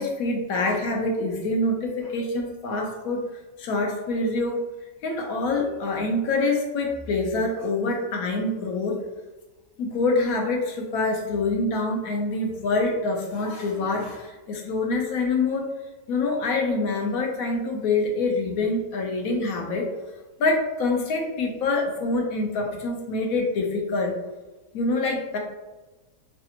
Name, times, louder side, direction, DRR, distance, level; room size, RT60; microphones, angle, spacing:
voice 1, 0.0-3.2 3.6-4.6 5.0-9.0 9.8-15.6 16.1-19.9 20.4-24.1 24.7-25.4, left 2 dB, 70° left, 1 dB, 1.0 m, -25 dB
3.2 x 2.6 x 2.8 m, 1.1 s
omnidirectional pair, 1.6 m